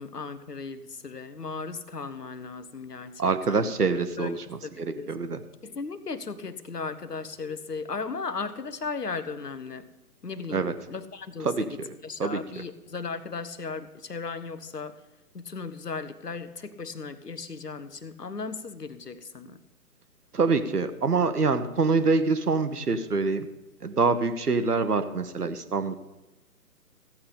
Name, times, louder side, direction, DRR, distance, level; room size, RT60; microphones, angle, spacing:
voice 1, 0.0-3.7 4.2-4.3 4.6-5.2 5.6-9.9 10.2-15.0 15.3-19.6, left 4 dB, 80° left, 12 dB, 1.2 m, -36 dB
voice 2, 3.2-5.4 10.5-10.7 11.4-11.9 12.2-12.4 20.3-23.5 23.8-25.9, right 4 dB, 75° right, 10 dB, 1.3 m, -25 dB
15.0 x 8.3 x 5.2 m, 1.0 s
figure-of-eight pair, 135°, 47 cm